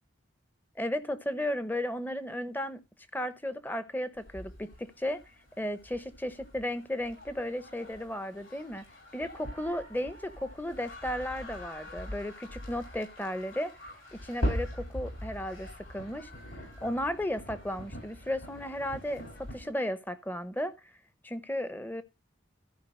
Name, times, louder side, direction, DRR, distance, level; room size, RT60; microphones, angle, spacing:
voice 1, 0.8-2.8 3.1-5.2 5.6-8.8 9.1-13.7 14.1-16.3 16.8-20.9 21.2-22.0, left 1 dB, 10° left, 0.7 m, -34 dB
sound 1, 4.2-19.7, equal, 85° left, 8.0 m, -41 dB
14.0 x 4.8 x 4.9 m
head